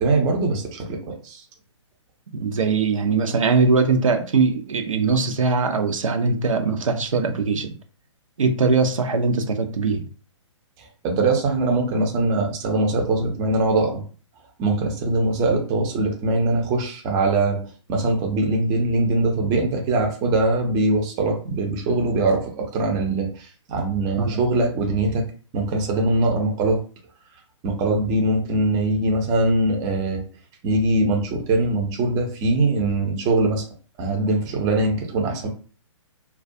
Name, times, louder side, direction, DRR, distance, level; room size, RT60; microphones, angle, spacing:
voice 1, 0.0-1.4 10.8-14.0 14.6-17.6 17.9-25.2 25.5-26.8 27.6-30.2 30.6-33.6 34.0-35.5, right 2 dB, 20° right, 1 dB, 0.5 m, -22 dB
voice 2, 2.3-7.7 8.4-10.0 24.2-24.4, right 4 dB, 90° right, 5 dB, 0.5 m, -21 dB
2.3 x 2.2 x 2.6 m, 0.39 s
hypercardioid pair, 140°, 16 cm